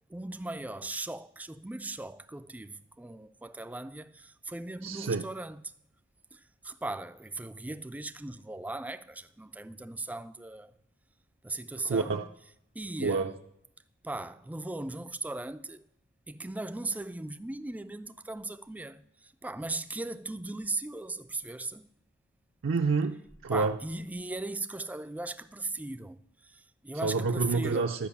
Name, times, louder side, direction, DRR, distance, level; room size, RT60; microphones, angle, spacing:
voice 1, 0.1-5.7 6.3-10.7 11.4-12.2 12.7-13.3 14.0-15.8 16.3-21.9 23.5-27.9, right 2 dB, 10° right, 0.3 m, -38 dB
voice 2, 4.8-5.3 11.8-12.2 13.0-13.3 22.6-23.8 27.0-28.1, right 4 dB, 65° right, 0.5 m, -28 dB
12.0 x 5.3 x 7.1 m
head